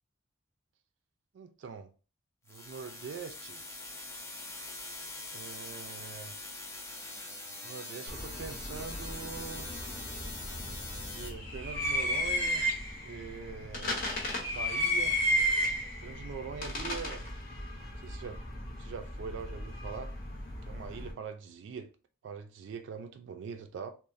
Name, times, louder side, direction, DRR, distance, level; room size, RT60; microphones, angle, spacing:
voice 1, 1.3-1.9 2.5-3.6 5.3-6.4 7.6-9.7 11.1-12.7 13.0-14.0 14.5-15.2 16.0-17.3 18.0-18.4 18.8-20.1 20.7-21.9 22.2-23.9, right 6 dB, 70° right, 0.3 m, -43 dB
sound 1, 2.5-11.3, left 2 dB, 15° left, 0.4 m, -43 dB
sound 2, 8.1-21.1, equal, 45° left, 0.7 m, -34 dB
3.0 x 2.0 x 2.4 m
head